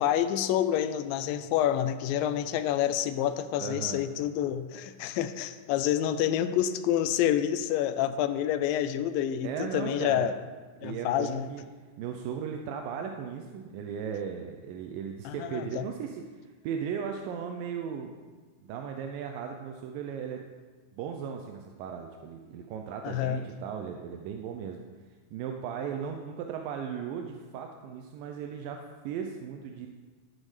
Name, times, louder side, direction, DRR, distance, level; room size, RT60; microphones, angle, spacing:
voice 1, 0.0-10.3 10.8-11.5 15.3-15.8 23.0-23.4, left 11 dB, 90° left, 11 dB, 2.4 m, -28 dB
voice 2, 3.6-4.0 9.4-10.3 10.8-11.7 12.0-18.2 18.6-20.5 20.9-24.8 25.3-29.9, right 7 dB, 85° right, 4 dB, 2.4 m, -37 dB
13.5 x 6.4 x 4.9 m, 1.4 s
omnidirectional pair, 3.9 m